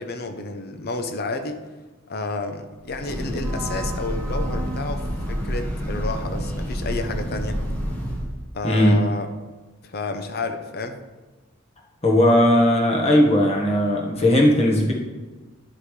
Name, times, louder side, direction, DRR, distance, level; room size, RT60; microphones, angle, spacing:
voice 1, 0.0-1.6 2.1-7.6 8.5-9.3 9.8-11.0, left 3 dB, 45° left, 7 dB, 0.7 m, -30 dB
Breathing / Train, 2.8-8.4, equal, 10° left, 1.3 m, -28 dB
voice 2, 8.6-9.1 12.0-14.9, left 1 dB, 30° left, -1 dB, 1.3 m, -17 dB
10.0 x 5.5 x 3.2 m, 1.3 s
head